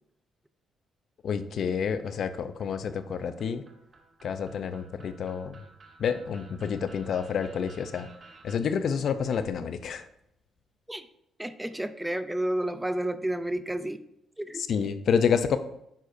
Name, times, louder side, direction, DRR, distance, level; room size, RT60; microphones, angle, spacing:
voice 1, 1.2-3.6 4.2-5.6 6.0-8.1 8.4-10.1 14.6-15.6, left 7 dB, 60° left, 11 dB, 0.5 m, -28 dB
sound 1, 2.1-8.6, right 4 dB, 40° right, 1.2 m, -54 dB
voice 2, 11.4-14.0 14.4-14.7, right 1 dB, 5° right, 11 dB, 0.5 m, -31 dB
9.5 x 6.5 x 2.6 m, 0.77 s
cardioid pair, 90°, 0 cm